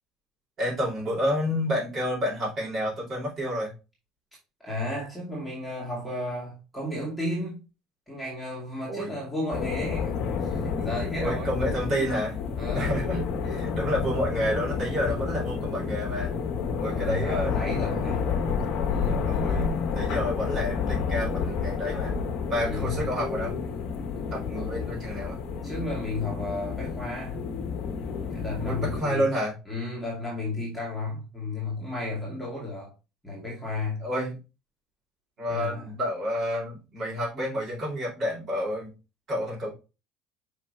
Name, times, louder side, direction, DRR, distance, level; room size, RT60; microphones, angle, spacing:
voice 1, 0.6-3.7 8.9-9.2 11.2-12.4 12.7-16.3 16.8-17.6 19.2-19.7 19.9-22.1 22.5-23.5 24.3-25.4 28.6-29.5 34.0-34.4 35.4-38.9 39.3-39.7, equal, 35° right, 4.1 m, -29 dB
voice 2, 4.6-7.6 8.1-10.1 10.4-11.5 12.6-13.0 16.8-18.3 18.9-19.8 22.6-23.0 24.5-24.7 25.6-27.4 28.3-29.3 29.7-32.9 33.2-34.0 35.5-35.9, left 2 dB, ahead, 2.1 m, -33 dB
sound 1, 9.5-29.0, left 5 dB, 50° left, 1.4 m, -30 dB
5.8 x 5.2 x 3.3 m
cardioid pair, 175°, 0 cm